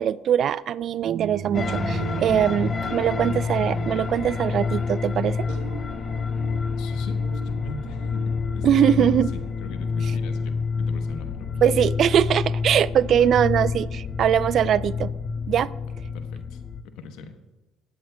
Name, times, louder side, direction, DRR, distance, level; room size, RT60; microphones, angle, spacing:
voice 1, 0.0-5.5 8.6-9.3 11.6-15.1 15.5-15.7, right 9 dB, 55° right, 18 dB, 0.3 m, -22 dB
sound 1, 1.0-10.9, right 6 dB, 85° right, 1.0 m, -37 dB
sound 2, 1.5-16.8, left 5 dB, 35° left, 0.5 m, -28 dB
voice 2, 6.8-9.2 9.6-11.5 13.2-13.3 16.1-16.6 16.9-17.3, left 4 dB, 75° left, 7 dB, 1.0 m, -39 dB
17.5 x 8.6 x 2.3 m, 1.1 s
supercardioid pair, 80°, 0 cm